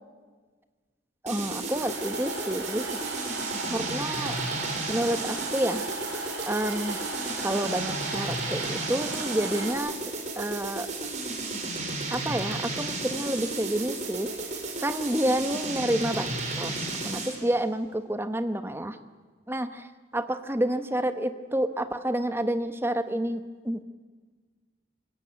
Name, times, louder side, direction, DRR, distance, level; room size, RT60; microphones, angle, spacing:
voice 1, 1.2-3.0 3.7-4.4 4.9-5.8 6.5-7.0 7.4-10.0 10.4-10.9 12.1-14.3 14.8-19.0 19.5-19.9 20.1-23.8, right 1 dB, 10° right, 10 dB, 1.1 m, -29 dB
sound 1, 1.3-17.5, right 3 dB, 40° right, 4.1 m, -33 dB
sound 2, 1.7-9.7, right 3 dB, 85° right, 5.3 m, -36 dB
26.5 x 17.0 x 9.1 m, 1.5 s
head